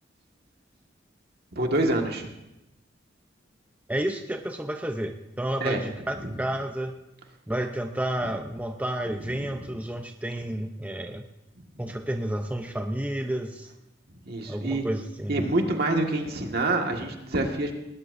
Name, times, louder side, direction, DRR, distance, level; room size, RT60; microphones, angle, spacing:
voice 1, 1.6-2.3 5.6-5.8 9.3-9.4 14.3-14.9 15.3-17.7, right 2 dB, 55° right, 2 dB, 1.8 m, -26 dB
voice 2, 3.9-7.0 7.5-11.2 11.8-13.7 14.5-15.5, right 1 dB, 10° right, 4 dB, 0.6 m, -31 dB
19.5 x 18.5 x 2.6 m, 0.91 s
head